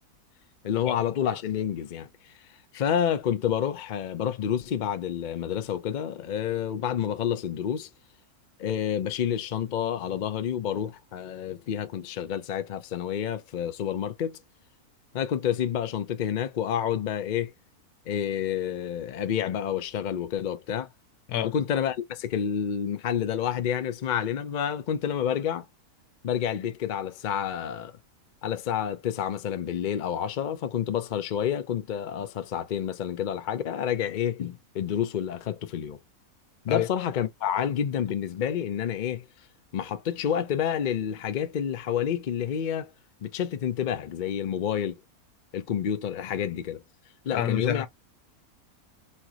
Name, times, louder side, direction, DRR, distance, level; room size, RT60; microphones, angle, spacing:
voice 1, 0.6-2.1 2.7-7.9 8.6-14.4 15.1-17.5 18.1-20.9 21.4-25.7 26.2-27.9 28.4-36.0 36.6-39.3 39.7-42.9 43.2-45.0 45.5-46.8 47.2-47.9, left 9 dB, 65° left, 0.4 m, -29 dB
voice 2, 47.3-47.9, left 10 dB, 85° left, 1.2 m, -27 dB
4.4 x 2.5 x 2.9 m
omnidirectional pair, 1.6 m